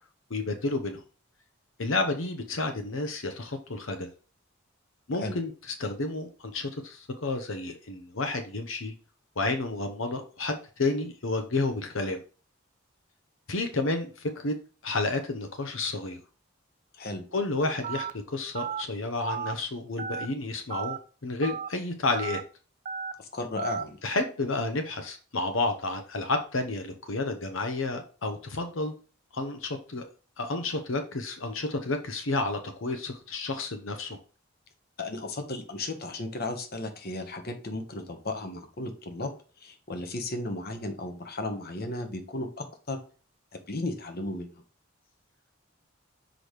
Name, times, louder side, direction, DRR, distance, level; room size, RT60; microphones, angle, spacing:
voice 1, 0.3-1.0 1.8-4.1 5.1-8.9 9.4-12.2 13.5-14.5 14.8-16.2 17.3-22.4 24.0-28.9 29.3-30.1 30.4-34.2, left 2 dB, 80° left, 6 dB, 0.9 m, -31 dB
voice 2, 16.9-17.2 23.2-24.0 35.0-39.3 39.6-43.0 43.5-44.6, left 2 dB, 50° left, 6 dB, 1.1 m, -35 dB
Telephone, 17.8-18.1 18.5-18.8 19.3-19.5 20.0-20.3 20.7-21.0 21.4-21.7 22.1-22.4 22.9-23.1 23.6-23.8, right 7 dB, 40° right, 0.4 m, -33 dB
6.2 x 5.0 x 3.1 m, 0.37 s
head